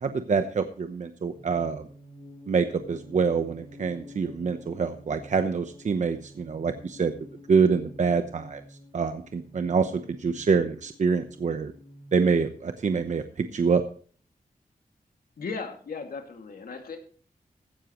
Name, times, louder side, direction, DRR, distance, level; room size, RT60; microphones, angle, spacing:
voice 1, 0.0-1.8 2.5-7.1 7.5-8.6 8.9-11.7 12.1-13.8, right 5 dB, 55° right, 8 dB, 0.9 m, -26 dB
sound 1, 1.3-13.4, left 1 dB, 35° left, 7.8 m, -49 dB
voice 2, 15.4-17.0, left 4 dB, 75° left, 4 dB, 2.3 m, -36 dB
16.0 x 12.0 x 3.1 m, 0.43 s
wide cardioid pair, 150°, 15 cm